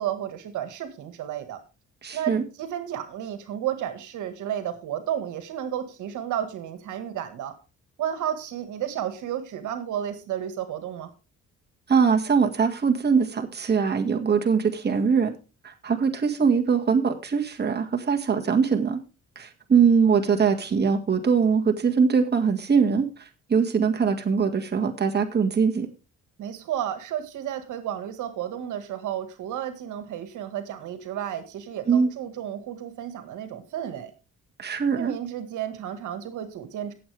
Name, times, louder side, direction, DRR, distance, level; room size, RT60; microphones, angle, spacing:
voice 1, 0.0-1.6 2.1-7.5 8.0-11.1 26.4-34.1 34.9-36.9, right 10 dB, 80° right, 9 dB, 1.8 m, -32 dB
voice 2, 2.0-2.4 11.9-15.3 15.6-19.0 19.4-23.1 23.5-25.9 31.9-32.1 34.6-35.1, right 6 dB, 35° right, 4 dB, 1.9 m, -22 dB
17.0 x 7.7 x 3.4 m, 0.32 s
cardioid pair, 90°, 30 cm